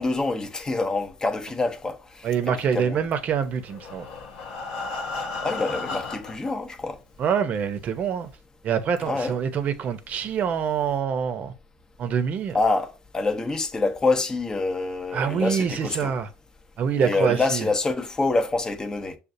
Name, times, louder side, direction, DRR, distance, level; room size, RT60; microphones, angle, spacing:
voice 1, 0.0-2.3 2.7-3.0 5.4-7.0 9.1-9.3 12.5-16.2 17.0-19.2, left 3 dB, 20° left, 0.7 m, -26 dB
voice 2, 2.2-4.1 7.2-8.3 8.6-11.5 12.0-12.6 15.1-16.3 16.8-17.7, right 7 dB, 50° right, 0.7 m, -25 dB
Breathing, 3.6-6.5 7.3-7.4 7.7-7.8 8.3-8.4, left 3 dB, 85° left, 0.9 m, -33 dB
6.5 x 2.3 x 2.7 m
supercardioid pair, 90°, 3 cm